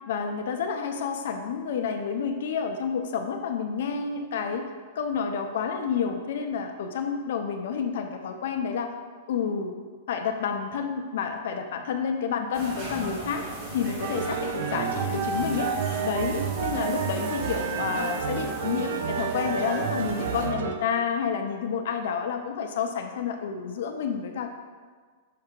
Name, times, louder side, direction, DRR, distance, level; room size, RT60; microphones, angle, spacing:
voice 1, 0.1-4.7 5.0-8.9 9.3-9.8 10.1-13.4 13.7-15.7 16.0-24.5, left 6 dB, 70° left, 5 dB, 0.6 m, -29 dB
sound 1, 12.5-20.5, right 2 dB, 35° right, 1.5 m, -38 dB
sound 2, 14.0-20.8, right 6 dB, 65° right, 0.5 m, -30 dB
6.7 x 2.7 x 5.2 m, 1.5 s
hypercardioid pair, 145°, 0 cm